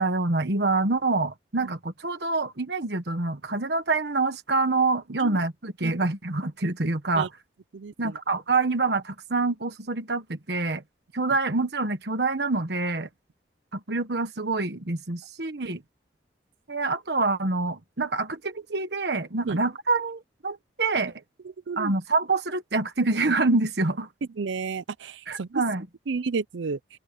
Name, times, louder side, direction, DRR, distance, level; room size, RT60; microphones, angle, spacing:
voice 1, 0.0-7.3 8.0-10.8 11.1-13.1 13.7-15.8 16.7-21.1 21.8-24.1 25.3-25.9, right 3 dB, 65° right, 1.4 m, -26 dB
voice 2, 7.7-8.2 19.4-19.6 21.7-21.9 24.4-25.6 26.1-26.8, right 4 dB, 85° right, 0.5 m, -31 dB
open air
head